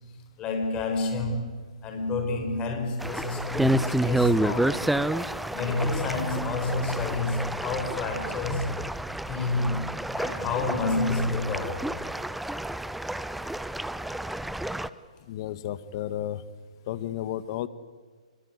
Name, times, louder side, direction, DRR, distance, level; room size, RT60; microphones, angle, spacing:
voice 1, 0.4-4.8 5.5-8.8 9.3-11.9, left 3 dB, 25° left, 4.4 m, -29 dB
sound 1, 3.0-14.9, right 1 dB, ahead, 0.7 m, -29 dB
voice 2, 15.3-16.4 16.9-17.7, left 12 dB, 45° left, 1.4 m, -32 dB
26.5 x 24.0 x 8.2 m
hypercardioid pair, 130°, 4 cm